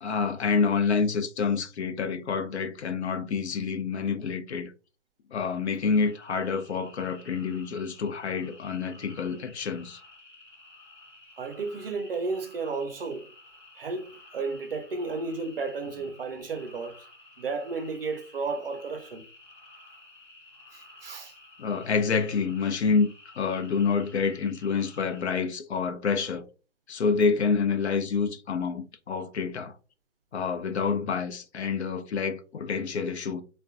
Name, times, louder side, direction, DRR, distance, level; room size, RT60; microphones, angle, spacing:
voice 1, 0.0-4.7 5.3-10.0 21.6-23.1 23.4-26.5 26.9-29.7 30.3-33.4, left 5 dB, 60° left, 0.5 m, -27 dB
sound 1, 5.4-25.2, left 2 dB, 25° left, 0.7 m, -53 dB
voice 2, 11.4-13.3 13.8-17.1 17.4-19.2 20.7-21.3, right 4 dB, 50° right, 0.5 m, -33 dB
3.4 x 2.2 x 2.4 m
hypercardioid pair, 165°, 37 cm